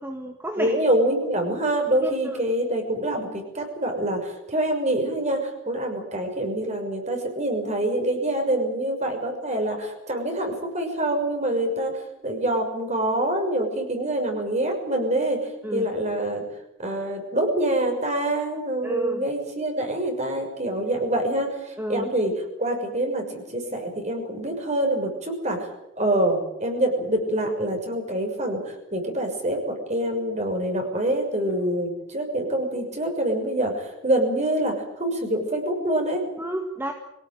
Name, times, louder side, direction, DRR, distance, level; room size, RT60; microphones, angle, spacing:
voice 1, 0.0-0.8 2.0-2.4 15.6-15.9 18.8-19.2 21.8-22.1 36.4-36.9, right 1 dB, 10° right, 3 dB, 1.8 m, -31 dB
voice 2, 0.6-11.9 12.2-15.4 15.7-16.4 16.8-22.3 22.6-25.6 26.0-36.2, right 1 dB, 35° right, 4 dB, 6.4 m, -25 dB
24.5 x 18.0 x 9.4 m, 0.88 s
head